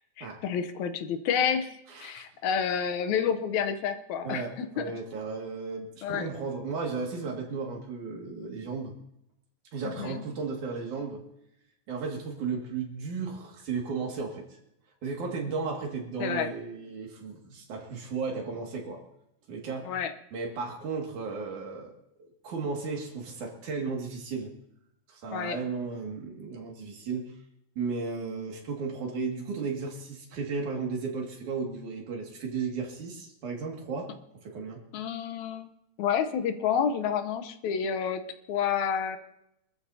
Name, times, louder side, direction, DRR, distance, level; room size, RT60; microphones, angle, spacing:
voice 1, 0.2-1.7 2.0-4.9 6.0-6.3 10.0-10.2 16.2-16.5 19.9-20.1 25.3-25.6 34.9-35.7 36.0-38.2 38.5-39.2, left 7 dB, 80° left, 9 dB, 2.2 m, -29 dB
voice 2, 1.9-2.3 4.2-9.0 9.7-11.2 11.9-14.5 15.0-19.0 19.5-19.9 20.3-21.9 22.2-24.5 25.1-27.3 27.8-34.9, right 4 dB, 85° right, 0 dB, 3.7 m, -34 dB
25.5 x 13.5 x 2.8 m, 0.81 s
omnidirectional pair, 3.4 m